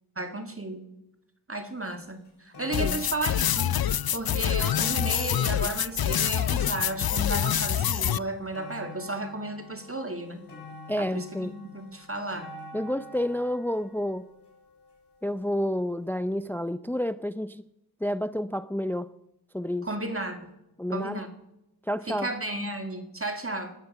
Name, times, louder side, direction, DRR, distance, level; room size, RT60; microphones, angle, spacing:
voice 1, 0.2-0.9 1.5-3.7 4.1-10.4 11.0-12.5 19.8-20.5 20.9-21.3 22.1-23.8, right 2 dB, 35° right, 2.1 m, -33 dB
sound 1, 1.8-1.9 2.2-15.4 16.2-16.3, left 2 dB, 85° left, 4.6 m, -47 dB
sound 2, 2.7-8.2, left 10 dB, 65° left, 0.5 m, -26 dB
voice 2, 10.9-11.6 12.7-14.3 15.2-17.6 18.0-19.1 19.5-19.9 20.8-21.2 21.8-22.3, equal, 5° left, 0.5 m, -29 dB
17.0 x 13.0 x 5.5 m
wide cardioid pair, 50°, 39 cm